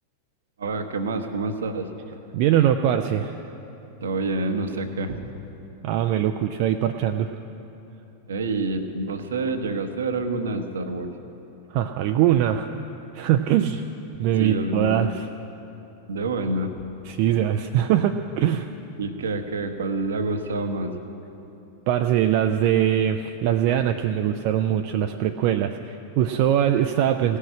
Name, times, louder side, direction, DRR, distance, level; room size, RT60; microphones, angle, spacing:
voice 1, 0.6-1.9 4.0-5.2 8.3-11.1 14.4-15.1 16.1-16.8 19.0-21.0, right 2 dB, 65° right, 8 dB, 0.9 m, -27 dB
voice 2, 2.3-3.4 5.8-7.3 11.7-12.7 13.1-13.8 14.2-15.3 17.1-18.7 21.9-27.4, right 10 dB, 45° right, 6 dB, 0.4 m, -22 dB
17.0 x 6.5 x 9.7 m, 3.0 s
figure-of-eight pair, 90°, 0 cm